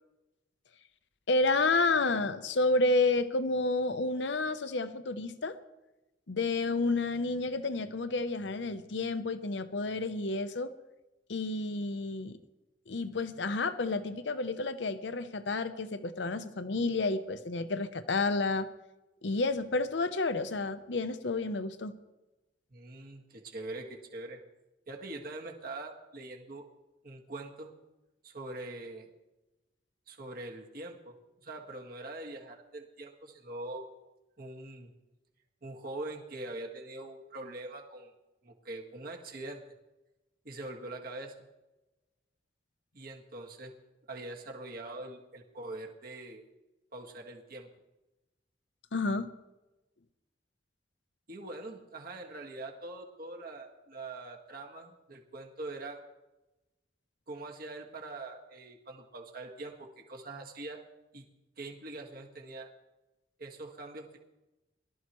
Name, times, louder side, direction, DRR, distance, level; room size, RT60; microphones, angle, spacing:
voice 1, 1.3-5.6 6.3-10.7 11.3-12.4 12.9-18.7 19.2-22.0 48.9-49.3, left 3 dB, 80° left, 0.8 m, -30 dB
voice 2, 22.7-24.4 24.9-26.7 27.0-27.7 28.2-29.1 30.1-33.8 34.4-34.9 35.6-38.1 38.4-39.6 40.5-41.3 42.9-43.7 44.1-46.4 46.9-47.7 51.3-56.0 57.3-60.8 61.1-61.3 61.6-62.7 63.4-64.2, right 2 dB, 55° right, 1.8 m, -43 dB
22.0 x 13.0 x 3.1 m
head